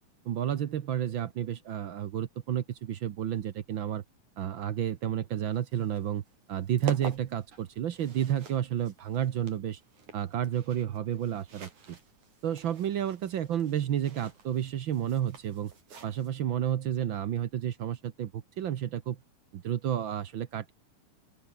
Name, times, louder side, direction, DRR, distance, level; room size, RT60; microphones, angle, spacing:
voice 1, 0.2-4.0 4.4-6.2 6.5-9.8 10.1-12.0 12.4-15.7 16.0-19.2 19.5-20.7, right 10 dB, 60° right, 1.3 m, -31 dB
sound 1, 5.5-16.3, right 5 dB, 80° right, 6.0 m, -47 dB
open air
omnidirectional pair, 3.4 m